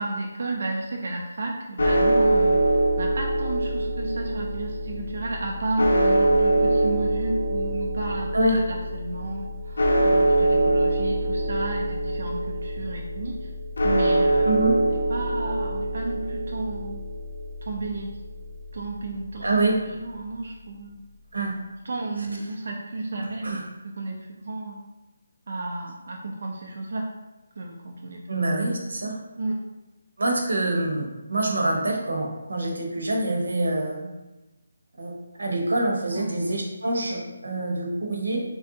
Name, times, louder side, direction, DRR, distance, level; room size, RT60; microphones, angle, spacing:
voice 1, 0.0-13.5 13.8-14.5 14.9-17.0 17.6-18.1 18.7-19.4 19.8-21.0 21.8-23.6 24.0-24.8 25.5-27.1 27.6-28.2 29.4-29.6 36.1-36.3, right 2 dB, 45° right, 0 dB, 0.3 m, -32 dB
sound 1, 1.8-20.0, right 1 dB, 80° left, 0.6 m, -24 dB
voice 2, 8.3-8.6 14.4-14.8 19.4-19.8 21.3-21.6 23.4-23.6 28.3-29.2 30.2-34.1 35.0-35.1 35.4-38.4, right 2 dB, 85° right, 0 dB, 0.9 m, -25 dB
3.3 x 2.5 x 3.8 m, 1.1 s
hypercardioid pair, 180°, 0 cm